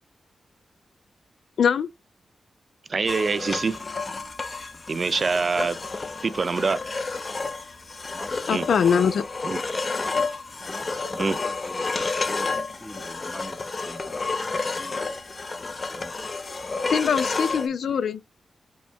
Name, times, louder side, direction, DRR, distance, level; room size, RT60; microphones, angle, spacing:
voice 1, 2.9-3.8 4.9-5.8 6.2-6.8 8.5-8.7 9.5-9.6 11.2-11.4, right 4 dB, 45° right, 0.4 m, -25 dB
sound 1, 3.1-17.7, left 4 dB, 35° left, 0.7 m, -30 dB
voice 2, 8.5-9.2 16.9-18.2, left 7 dB, 85° left, 0.4 m, -22 dB
voice 3, 10.7-11.9 12.2-12.5 12.8-13.6 13.9-14.0 14.8-14.9 15.5-15.6 15.9-16.3 16.8-16.9, equal, ahead, 0.7 m, -42 dB
5.2 x 2.3 x 3.5 m
wide cardioid pair, 105°, 0 cm